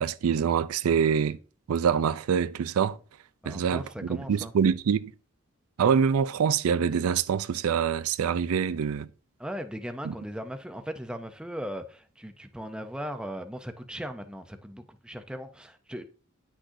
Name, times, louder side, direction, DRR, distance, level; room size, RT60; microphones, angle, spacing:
voice 1, 0.0-1.4 1.7-3.0 3.5-5.1 5.8-9.1 10.0-10.1, right 7 dB, 90° right, 0.4 m, -25 dB
voice 2, 3.4-4.5 9.4-16.0, equal, 5° right, 0.5 m, -38 dB
9.8 x 6.2 x 2.6 m
head